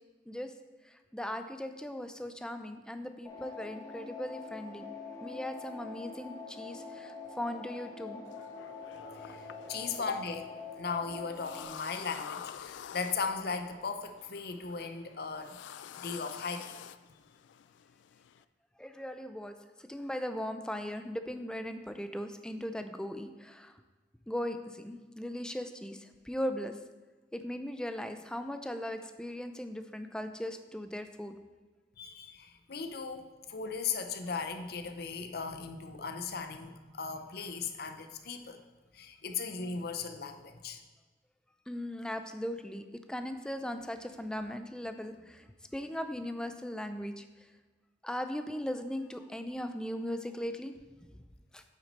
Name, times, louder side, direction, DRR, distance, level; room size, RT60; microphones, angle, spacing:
voice 1, 0.8-4.9 5.2-8.2 18.8-23.8 24.3-26.8 27.3-31.4 41.7-47.5 48.0-51.2 51.5-51.6, equal, 5° left, 8 dB, 0.4 m, -38 dB
sound 1, 3.2-11.6, left 4 dB, 20° left, 1.1 m, -45 dB
sound 2, 8.3-18.4, left 9 dB, 85° left, 0.3 m, -49 dB
voice 2, 9.2-10.5 10.8-15.6 16.0-16.7 32.0-38.6 38.9-40.8, left 5 dB, 60° left, 7 dB, 0.7 m, -37 dB
8.4 x 6.1 x 4.1 m, 1.3 s
head